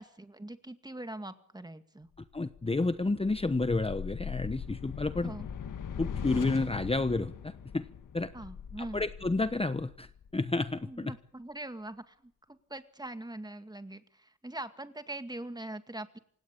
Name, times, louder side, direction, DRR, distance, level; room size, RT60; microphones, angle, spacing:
voice 1, 0.0-2.1 5.2-5.5 8.3-9.0 10.9-16.2, right 1 dB, 15° right, 10 dB, 2.1 m, -42 dB
sound 1, 2.3-10.8, left 7 dB, 85° left, 1.8 m, -41 dB
voice 2, 2.3-5.3 6.0-7.9 8.1-8.3 8.8-11.1, left 3 dB, 20° left, 11 dB, 1.1 m, -30 dB
27.5 x 17.0 x 8.7 m, 0.63 s
wide cardioid pair, 95°, 31 cm